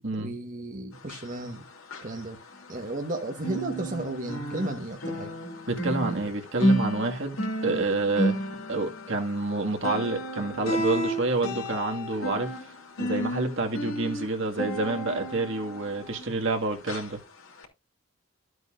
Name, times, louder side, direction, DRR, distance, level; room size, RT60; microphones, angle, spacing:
voice 1, 0.2-1.7 2.0-2.4 2.7-5.3, right 1 dB, 40° right, 1.3 m, -34 dB
sound 1, 1.0-3.1 3.4-16.5 16.9-17.1 17.6-17.7, equal, 70° left, 2.9 m, -32 dB
voice 2, 5.7-7.4 7.6-12.5 13.0-17.2, right 2 dB, 60° right, 1.9 m, -28 dB
13.5 x 8.1 x 2.5 m
head